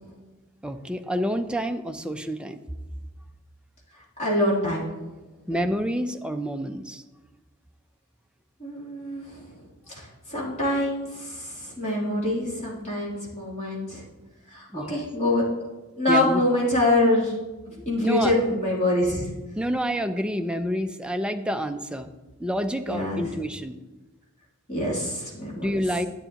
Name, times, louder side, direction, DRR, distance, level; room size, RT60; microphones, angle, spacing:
voice 1, 0.6-2.6 5.5-7.0 14.7-15.0 16.1-16.4 17.8-18.3 19.5-22.1 22.4-23.8 25.5-26.1, equal, 5° right, 6 dB, 0.4 m, -28 dB
voice 2, 4.2-4.9 8.6-9.5 9.9-14.0 14.5-15.4 15.9-17.3 17.7-19.3 22.8-23.2 24.7-25.7, left 1 dB, 30° left, -6 dB, 3.0 m, -25 dB
11.5 x 8.9 x 2.9 m, 1.1 s
head